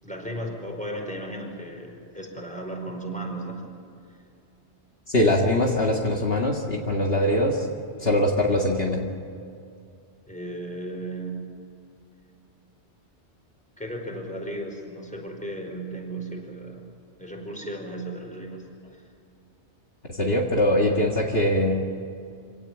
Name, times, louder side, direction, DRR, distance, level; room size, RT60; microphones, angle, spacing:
voice 1, 0.0-3.6 10.3-11.5 13.8-16.9 17.2-18.6 18.9-19.0, right 1 dB, 5° left, 0 dB, 4.9 m, -35 dB
voice 2, 5.1-7.7 8.0-9.1 20.0-21.8, left 1 dB, 60° left, 0 dB, 2.2 m, -22 dB
26.0 x 18.0 x 8.6 m, 2.4 s
omnidirectional pair, 1.2 m